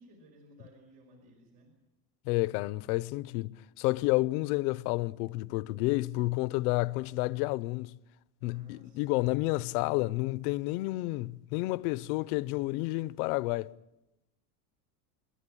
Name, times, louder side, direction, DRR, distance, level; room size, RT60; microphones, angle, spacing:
voice 1, 0.0-1.7 8.4-9.7, right 1 dB, 75° right, 5.4 m, -57 dB
voice 2, 2.3-8.0 8.4-13.7, left 20 dB, 70° left, 0.7 m, -30 dB
26.5 x 11.5 x 9.9 m
cardioid pair, 180°, 46 cm